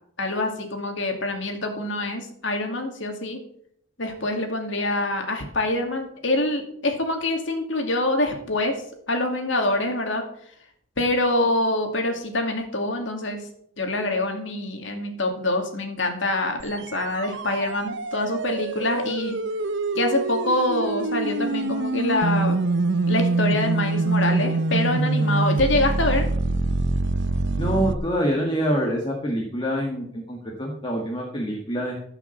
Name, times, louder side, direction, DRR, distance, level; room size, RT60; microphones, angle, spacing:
voice 1, 0.2-3.4 4.0-8.8 9.1-10.2 11.0-13.5 13.8-19.4 19.9-22.6 23.1-26.3, left 2 dB, 65° left, 4 dB, 2.4 m, -25 dB
sound 1, 16.6-27.9, right 3 dB, 65° right, 0.8 m, -25 dB
voice 2, 27.6-32.0, equal, 25° left, -1 dB, 1.9 m, -26 dB
16.0 x 5.9 x 7.2 m, 0.67 s
head